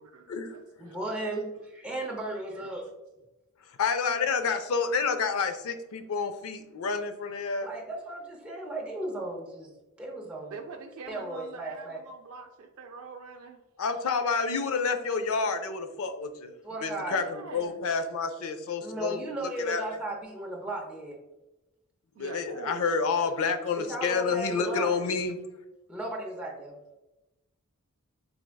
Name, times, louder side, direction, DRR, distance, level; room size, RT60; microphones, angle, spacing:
voice 1, 0.0-1.6 2.1-2.7 10.5-13.6 17.0-17.8 22.1-23.1, right 4 dB, 65° right, 3 dB, 0.4 m, -45 dB
voice 2, 0.8-2.8 7.6-9.7 10.0-10.5 11.1-12.0 16.6-17.2 18.8-21.2 23.7-25.0 25.9-26.8, right 2 dB, 5° right, -3 dB, 0.6 m, -35 dB
voice 3, 3.8-7.7 13.8-16.5 16.8-19.2 19.6-19.8 22.2-25.4, left 5 dB, 65° left, 8 dB, 0.5 m, -29 dB
4.6 x 3.4 x 2.2 m, 0.99 s
head